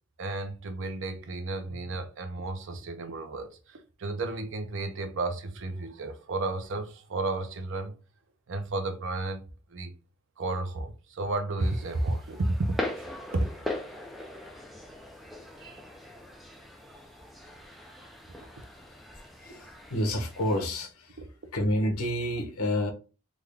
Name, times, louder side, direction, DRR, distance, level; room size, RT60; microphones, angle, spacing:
voice 1, 0.2-7.9 8.5-9.4 9.7-9.9 10.4-13.1 13.3-13.5 15.6-15.8 18.4-18.5, right 2 dB, 60° right, 0.5 m, -32 dB
sound 1, 11.6-20.7, left 1 dB, ahead, 0.5 m, -40 dB
voice 2, 19.4-21.2 21.5-22.9, equal, 90° left, 0.9 m, -29 dB
3.7 x 2.2 x 3.3 m
head